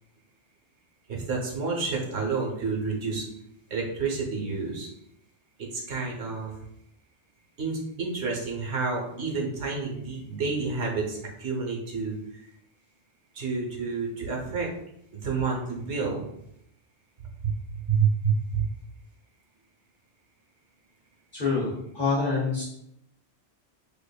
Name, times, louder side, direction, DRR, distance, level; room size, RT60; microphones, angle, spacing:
voice 1, 1.1-3.2 3.7-4.9 5.6-6.6 7.6-12.4 13.3-14.7 15.1-16.3 17.4-18.7, right 5 dB, 70° right, -1 dB, 1.1 m, -29 dB
voice 2, 21.3-22.6, left 4 dB, 50° left, -6 dB, 1.1 m, -26 dB
5.0 x 2.5 x 2.2 m, 0.76 s
omnidirectional pair, 1.2 m